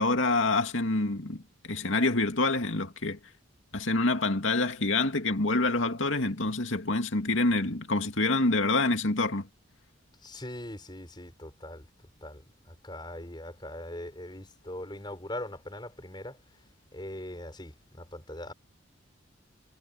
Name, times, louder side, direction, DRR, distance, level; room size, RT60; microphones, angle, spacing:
voice 1, 0.0-1.4 1.7-3.2 3.7-9.5, left 2 dB, 75° left, 2.4 m, -26 dB
voice 2, 10.2-11.9 12.2-12.4 12.7-16.4 16.9-18.5, left 1 dB, 20° left, 5.8 m, -41 dB
head